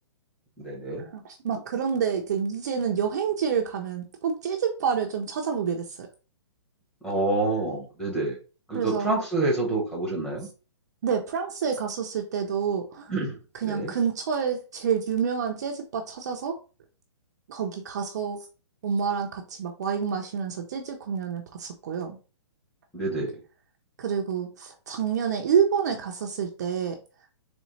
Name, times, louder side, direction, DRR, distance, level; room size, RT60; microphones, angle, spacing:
voice 1, 0.6-1.0 7.0-8.4 8.7-10.5 13.1-13.4 13.6-13.9 22.9-23.4, right 2 dB, 5° left, -5 dB, 0.9 m, -27 dB
voice 2, 1.1-6.1 8.7-9.1 11.0-13.1 13.6-16.6 17.5-18.4 18.8-22.2 24.0-27.0, right 7 dB, 35° right, 2 dB, 0.5 m, -28 dB
4.0 x 3.1 x 3.1 m, 0.34 s
hypercardioid pair, 170°, 15 cm